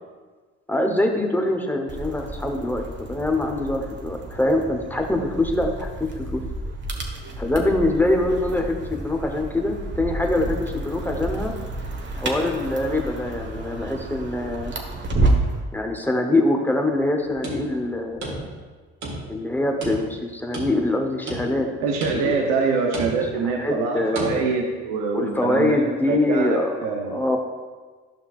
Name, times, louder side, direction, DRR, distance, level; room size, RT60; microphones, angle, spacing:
voice 1, 0.7-6.4 7.4-11.5 12.2-14.7 15.7-18.5 19.3-21.7 22.1-22.6 23.4-24.6 25.1-27.4, left 1 dB, 5° left, 3 dB, 1.1 m, -24 dB
sound 1, 1.9-15.6, right 2 dB, 40° right, 1.3 m, -30 dB
sound 2, 17.3-18.7 19.0-19.5 19.8-20.9 21.3-21.7 22.0-22.5 22.9-23.4 24.1-24.4, right 2 dB, 70° right, 1.9 m, -33 dB
voice 2, 21.8-27.2, right 4 dB, 85° right, 1 dB, 0.9 m, -25 dB
12.0 x 5.6 x 2.5 m, 1.4 s
supercardioid pair, 70°, 30 cm